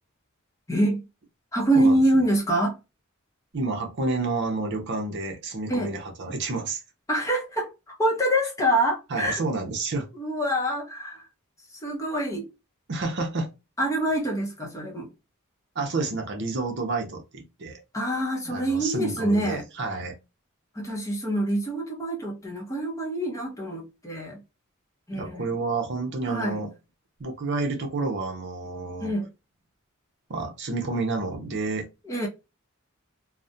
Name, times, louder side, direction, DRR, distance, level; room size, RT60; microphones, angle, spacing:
voice 1, 0.7-1.0 1.5-2.8 5.7-5.9 7.1-9.4 10.1-11.3 11.8-12.5 13.8-15.1 17.9-19.6 20.7-24.4 25.1-25.5 26.2-26.7 29.0-29.3 32.0-32.3, right 1 dB, 15° left, 0.6 m, -25 dB
voice 2, 3.5-6.8 9.1-10.1 12.9-13.5 15.8-17.8 18.5-20.2 25.1-26.7 27.2-29.1 30.3-31.9, right 3 dB, 55° right, 0.6 m, -29 dB
2.3 x 2.1 x 2.6 m
head